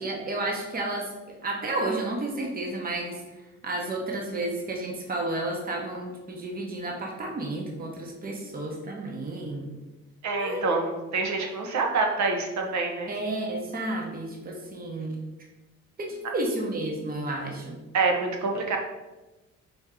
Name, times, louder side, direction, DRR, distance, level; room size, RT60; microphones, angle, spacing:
voice 1, 0.0-3.2 3.6-9.7 10.4-10.7 13.1-15.2 16.0-17.8, right 2 dB, 30° right, 0 dB, 0.9 m, -31 dB
voice 2, 10.2-13.1 17.9-18.8, right 3 dB, 65° right, 2 dB, 0.9 m, -26 dB
4.3 x 2.8 x 3.7 m, 1.1 s
cardioid pair, 90°, 30 cm